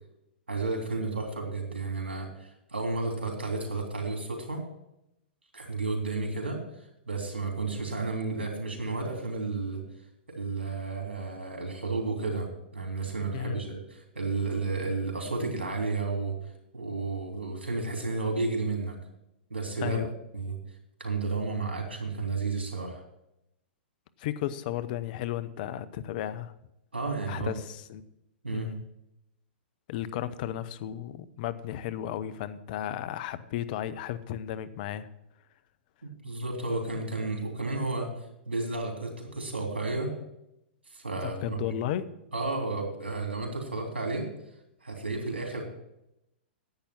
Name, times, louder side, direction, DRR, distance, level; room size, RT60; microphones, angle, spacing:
voice 1, 0.5-4.6 5.5-6.6 7.1-9.8 10.3-16.4 16.7-19.0 19.5-20.0 20.3-20.5 21.0-23.0 26.9-27.5 28.4-28.7 36.0-38.1 38.5-40.1 40.9-41.6 42.3-44.3 44.8-45.6, right 3 dB, 85° right, 1 dB, 3.3 m, -32 dB
voice 2, 19.8-20.1 24.2-26.5 27.3-28.0 28.5-28.8 29.9-35.1 41.2-42.1, left 11 dB, 50° left, 14 dB, 0.8 m, -34 dB
10.5 x 8.6 x 6.0 m, 0.84 s
hypercardioid pair, 110°, 6 cm